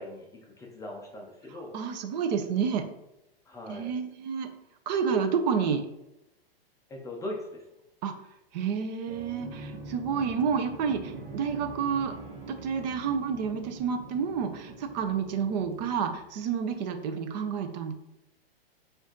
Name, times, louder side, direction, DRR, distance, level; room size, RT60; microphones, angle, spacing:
voice 1, 0.0-1.8 3.5-4.0 6.9-7.6, left 1 dB, 10° left, -1 dB, 0.4 m, -40 dB
voice 2, 1.7-2.8 3.7-4.5 4.9-5.8 8.0-8.1 8.5-12.1 12.6-17.9, right 6 dB, 45° right, 6 dB, 0.6 m, -29 dB
sound 1, 9.0-16.6, right 3 dB, 70° right, 1.1 m, -44 dB
4.8 x 2.6 x 3.7 m, 0.87 s
hypercardioid pair, 130°, 30 cm